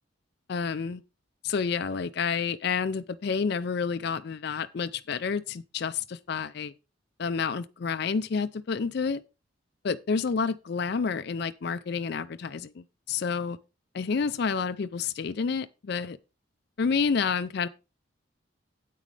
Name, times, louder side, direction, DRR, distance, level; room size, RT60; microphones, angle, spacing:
voice 1, 0.5-1.0 1.4-6.7 7.2-9.2 9.8-13.6 13.9-16.2 16.8-17.7, left 5 dB, 55° left, 0.4 m, -29 dB
9.0 x 8.4 x 3.3 m
head